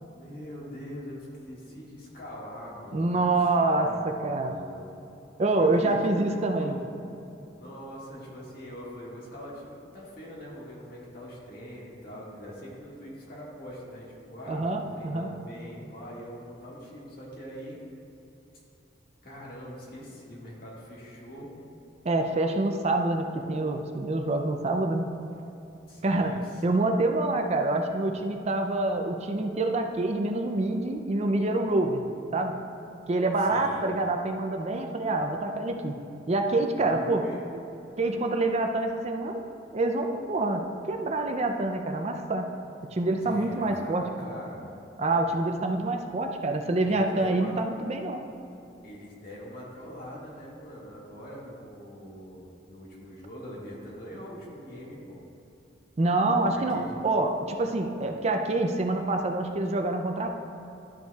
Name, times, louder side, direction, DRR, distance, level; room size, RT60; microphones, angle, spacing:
voice 1, 0.1-4.0 4.4-4.9 5.5-6.8 7.6-17.8 19.2-21.5 25.9-26.6 33.4-33.9 36.8-37.4 43.2-44.6 46.9-47.5 48.8-55.2 56.5-57.0, equal, 55° left, -5 dB, 1.8 m, -43 dB
voice 2, 2.9-4.6 5.4-6.8 14.5-15.3 22.0-25.1 26.0-26.3 26.6-32.0 32.3-32.6 33.1-36.0 36.3-37.2 38.0-39.4 39.7-42.5 42.9-44.0 45.0-48.2 56.0-60.3, right 2 dB, 35° right, 4 dB, 0.5 m, -26 dB
12.0 x 6.6 x 2.4 m, 2.9 s
head